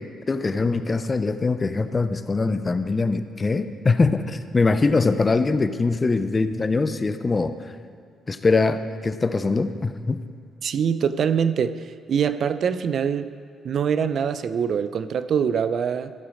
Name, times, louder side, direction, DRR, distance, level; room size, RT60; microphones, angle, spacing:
voice 1, 0.0-7.5 8.3-10.2, left 3 dB, 30° left, 10 dB, 0.5 m, -22 dB
voice 2, 10.6-13.3 13.6-16.1, right 7 dB, 60° right, 13 dB, 0.4 m, -24 dB
14.5 x 4.9 x 6.3 m, 2.4 s
cardioid pair, 90°, 0 cm